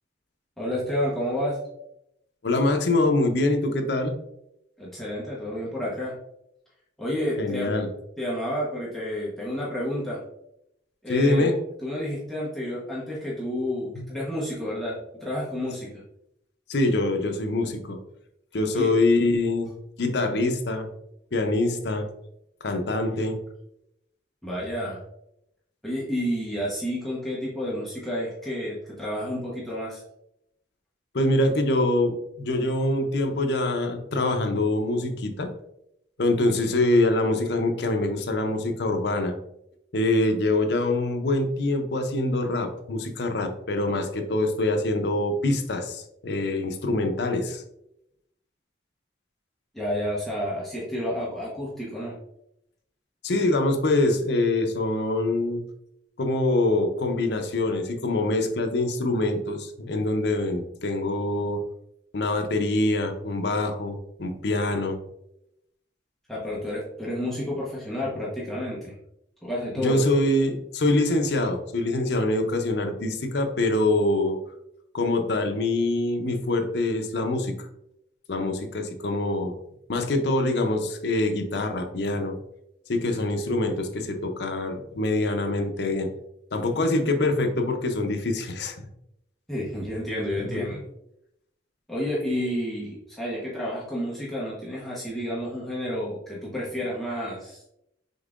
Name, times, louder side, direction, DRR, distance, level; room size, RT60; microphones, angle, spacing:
voice 1, 0.6-1.6 4.8-6.1 7.0-7.7 8.2-10.2 11.0-11.5 11.8-16.0 18.7-19.0 24.4-25.0 25.8-30.0 49.7-52.1 66.3-68.9 69.4-70.0 89.5-90.8 91.9-97.6, equal, ahead, -8 dB, 0.9 m, -30 dB
voice 2, 2.4-4.1 7.4-7.9 11.1-11.6 13.9-14.1 16.7-18.0 18.5-19.7 20.0-20.9 21.3-22.1 22.6-23.4 31.1-35.5 36.2-39.3 39.9-47.6 53.2-55.6 56.2-61.6 62.1-65.0 69.8-74.4 74.9-77.7 78.3-79.6 79.9-82.4 82.9-86.1 86.5-88.8 90.5-90.8, left 2 dB, 65° left, 5 dB, 0.6 m, -24 dB
5.3 x 3.6 x 2.4 m, 0.81 s
head